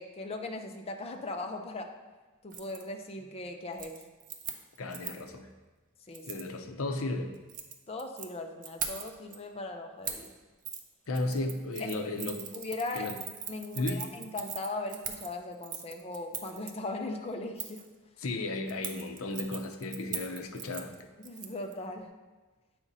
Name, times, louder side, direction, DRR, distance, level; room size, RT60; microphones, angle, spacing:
voice 1, 0.0-1.9 2.4-3.9 6.1-6.5 7.9-10.3 11.8-11.9 12.5-13.1 13.5-17.8 21.2-22.1, left 2 dB, 30° left, 3 dB, 0.5 m, -38 dB
Keys jangling, 2.5-2.8 3.2-3.4 3.7-5.3 6.1-6.5 7.3-8.3 8.6-9.4 10.0-10.3 10.6-10.8 11.1-16.7 17.6-17.9 18.7-21.7 22.0-22.1, right 7 dB, 40° right, 0.5 m, -41 dB
voice 2, 4.8-5.5 6.3-7.3 11.1-12.5 12.9-13.1 13.7-14.0 18.2-20.9, left 2 dB, 70° left, 5 dB, 0.7 m, -34 dB
8.6 x 4.9 x 2.7 m, 1.2 s
head